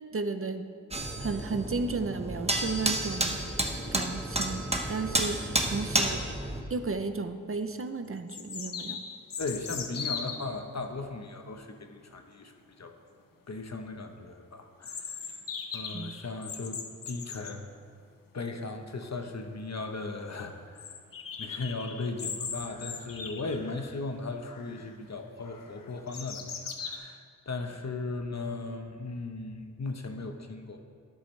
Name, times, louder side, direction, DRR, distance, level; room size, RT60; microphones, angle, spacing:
voice 1, 0.1-0.7 1.2-3.4 3.9-6.2 6.7-9.0 15.9-16.1, right 4 dB, 40° right, 8 dB, 0.7 m, -33 dB
sound 1, 0.9-6.6, right 1 dB, 20° right, 1.2 m, -31 dB
sound 2, 7.3-7.4 8.3-10.5 14.8-17.6 19.2-19.3 19.6-19.7 20.0-20.1 20.8-24.0 24.4-24.9 25.4-27.0, left 6 dB, 75° left, 0.9 m, -39 dB
voice 2, 9.4-12.5 12.8-12.9 13.5-15.2 15.7-16.8 17.1-17.7 18.3-20.9 21.4-30.8, left 3 dB, 50° left, 5 dB, 1.1 m, -37 dB
13.0 x 10.0 x 3.3 m, 2.2 s
cardioid pair, 50°, 33 cm